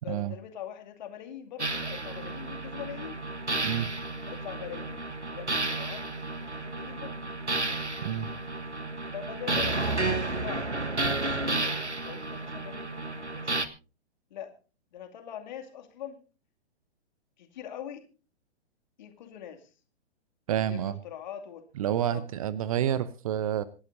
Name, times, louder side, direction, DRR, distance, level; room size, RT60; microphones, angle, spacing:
voice 1, 0.0-3.2 4.3-5.0 5.3-6.0 6.4-7.2 9.1-11.8 12.0-13.7 14.3-14.6 14.9-16.2 17.4-18.1 19.0-19.7 20.6-21.7 22.1-22.3, left 9 dB, 40° left, 6 dB, 2.5 m, -43 dB
sound 1, 1.6-13.7, right 2 dB, 90° right, 1.5 m, -32 dB
voice 2, 20.5-20.9 21.8-23.6, right 10 dB, 30° right, 18 dB, 0.8 m, -29 dB
26.5 x 12.0 x 2.6 m, 0.33 s
figure-of-eight pair, 120°, 33 cm